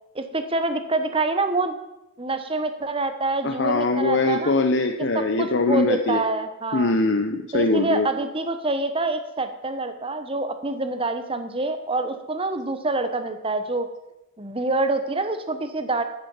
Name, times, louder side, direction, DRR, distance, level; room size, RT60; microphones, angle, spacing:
voice 1, 0.1-1.7 2.2-4.6 5.0-6.9 7.5-13.9 14.4-16.0, right 2 dB, 30° right, 8 dB, 1.1 m, -26 dB
voice 2, 3.4-6.2 6.7-8.1, left 3 dB, 60° left, 5 dB, 0.8 m, -22 dB
14.5 x 7.0 x 7.2 m, 0.99 s
head